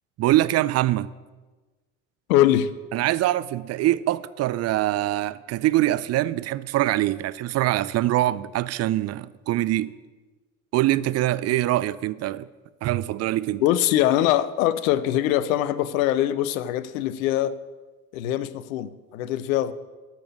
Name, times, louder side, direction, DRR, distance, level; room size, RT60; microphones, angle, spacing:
voice 1, 0.2-1.1 2.9-9.9 10.7-12.5 12.8-13.6, right 15 dB, 35° right, 0.5 m, -23 dB
voice 2, 2.3-2.7 13.6-17.6 18.1-19.7, left 12 dB, 65° left, 0.8 m, -22 dB
12.5 x 5.9 x 8.8 m
hypercardioid pair, 65°, 44 cm